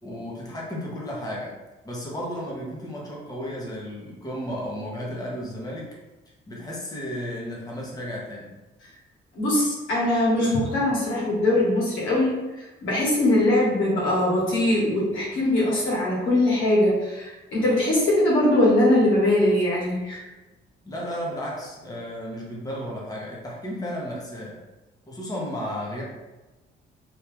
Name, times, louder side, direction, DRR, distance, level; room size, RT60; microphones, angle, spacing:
voice 1, 0.0-1.6 1.8-5.9 6.5-8.5 20.8-24.6 25.1-26.0, equal, 20° left, -4 dB, 1.0 m, -33 dB
voice 2, 9.3-20.2, left 1 dB, 85° left, -6 dB, 1.5 m, -21 dB
3.0 x 2.7 x 3.4 m, 1.1 s
cardioid pair, 90°, 20 cm